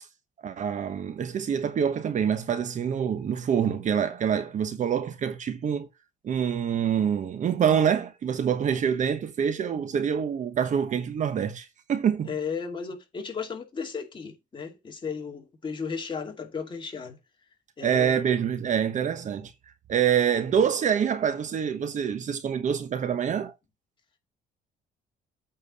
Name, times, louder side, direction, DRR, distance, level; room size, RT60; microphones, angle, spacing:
voice 1, 0.4-5.9 6.2-12.3 17.8-19.5 19.9-23.5, right 8 dB, 45° right, 1.2 m, -26 dB
voice 2, 12.2-17.2 17.8-18.2, left 5 dB, 30° left, 2.5 m, -35 dB
8.7 x 4.6 x 5.5 m
cardioid pair, 110°, 17 cm